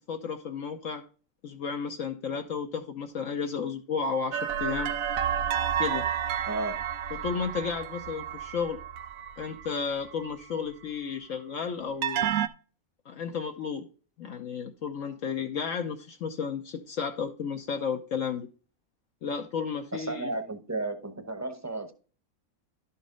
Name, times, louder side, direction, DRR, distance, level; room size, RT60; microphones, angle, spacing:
voice 1, 0.1-1.0 1.4-4.9 5.8-6.1 7.2-8.8 9.4-12.3 13.1-13.9 14.2-18.5 19.2-20.3, left 6 dB, 65° left, 1.1 m, -33 dB
sound 1, 4.3-10.5 12.0-12.5, right 9 dB, 75° right, 1.0 m, -31 dB
voice 2, 6.5-6.8 19.9-21.9, right 2 dB, 15° right, 0.8 m, -33 dB
12.0 x 4.2 x 3.7 m
omnidirectional pair, 1.5 m